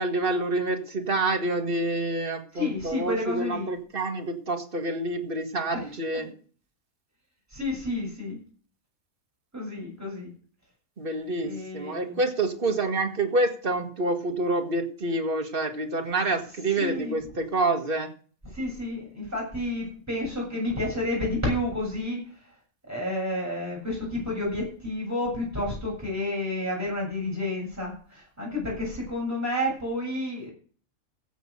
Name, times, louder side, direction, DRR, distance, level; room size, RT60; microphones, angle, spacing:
voice 1, 0.0-6.3 11.0-18.1, right 2 dB, 40° right, 5 dB, 1.9 m, -27 dB
voice 2, 2.5-3.7 6.1-6.3 7.5-8.4 9.5-10.3 11.4-12.2 16.8-17.1 18.5-22.2 22.9-30.5, left 1 dB, 10° right, -4 dB, 7.5 m, -30 dB
15.5 x 6.8 x 6.7 m, 0.43 s
omnidirectional pair, 1.5 m